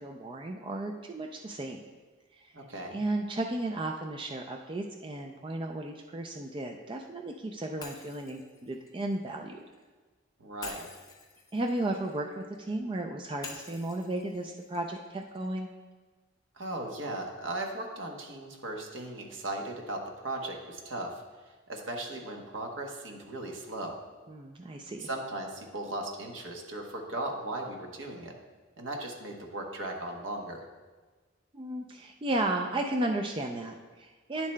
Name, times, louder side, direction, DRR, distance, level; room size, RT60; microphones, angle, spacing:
voice 1, 0.0-1.8 2.3-2.5 2.9-9.6 11.5-15.7 24.3-25.1 31.5-34.5, right 2 dB, 25° right, 3 dB, 0.4 m, -34 dB
voice 2, 2.5-3.0 10.4-10.9 16.6-21.2 21.7-24.0 25.0-28.3 28.8-30.6, right 2 dB, 75° right, 1 dB, 1.0 m, -37 dB
Shatter, 7.8-9.9 10.6-12.7 13.4-15.5, left 4 dB, 20° left, 0.6 m, -48 dB
10.0 x 7.2 x 2.2 m, 1.3 s
head